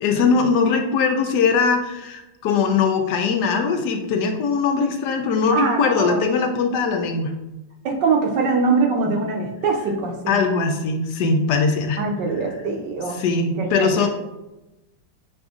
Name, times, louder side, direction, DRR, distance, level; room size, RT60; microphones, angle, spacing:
voice 1, 0.0-7.3 9.1-9.2 10.3-12.0 13.1-14.1, left 5 dB, 70° left, 4 dB, 1.0 m, -21 dB
voice 2, 5.5-6.2 7.8-10.4 12.0-13.2 13.6-14.1, right 4 dB, 70° right, 1 dB, 1.2 m, -23 dB
6.8 x 2.6 x 2.4 m, 0.97 s
omnidirectional pair, 2.1 m